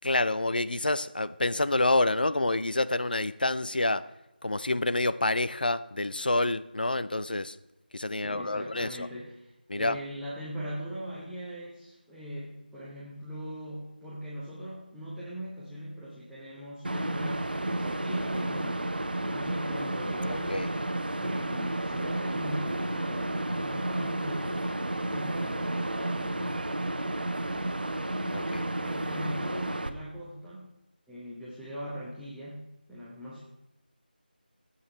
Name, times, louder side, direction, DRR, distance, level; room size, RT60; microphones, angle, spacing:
voice 1, 0.0-4.0 4.4-7.6 7.9-9.1 9.7-10.0 20.3-20.7 28.3-28.7, left 2 dB, 65° left, 14 dB, 0.6 m, -28 dB
voice 2, 8.1-24.6 25.1-26.6 28.8-30.7 31.1-33.4, equal, ahead, -10 dB, 0.7 m, -40 dB
sound 1, 16.8-29.9, right 1 dB, 65° right, 1.0 m, -31 dB
17.0 x 8.1 x 3.2 m, 0.99 s
figure-of-eight pair, 165°, 5 cm